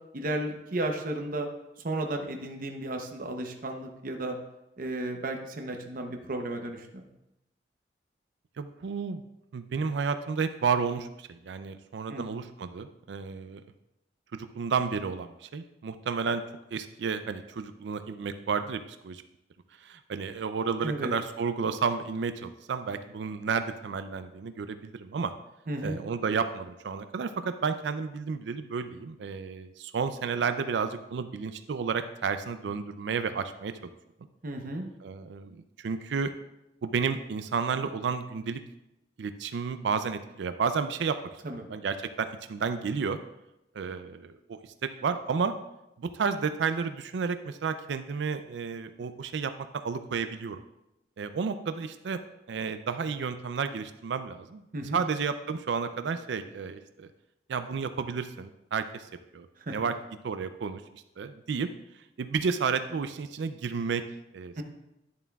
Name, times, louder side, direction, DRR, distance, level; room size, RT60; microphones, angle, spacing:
voice 1, 0.1-1.5 1.8-4.4 4.8-7.1 12.1-12.3 20.8-21.1 25.7-26.0 34.4-34.9 41.4-41.7 54.7-55.0 59.7-59.8 64.6-64.7, right 1 dB, 50° right, 4 dB, 0.8 m, -33 dB
voice 2, 8.6-9.2 9.5-13.6 14.3-16.4 16.7-19.2 19.8-25.3 25.8-33.7 35.0-36.3 36.8-38.6 39.2-41.2 41.7-43.2 43.7-45.5 46.0-49.5 49.8-50.6 51.2-52.2 52.5-54.6 54.9-57.1 57.5-59.1 59.3-60.0 60.2-60.8 61.2-61.7 62.2-64.0 64.3-64.6, right 5 dB, 80° right, 10 dB, 0.4 m, -31 dB
10.5 x 7.2 x 2.3 m, 0.90 s
head